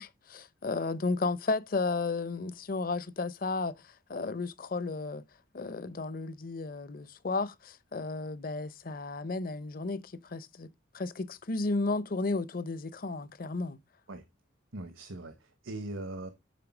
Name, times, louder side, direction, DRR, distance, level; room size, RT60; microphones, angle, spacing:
voice 1, 0.0-5.2 5.5-13.8, left 3 dB, 45° left, 0.6 m, -33 dB
voice 2, 14.7-16.3, right 2 dB, 85° right, 1.1 m, -40 dB
8.4 x 3.8 x 6.0 m
head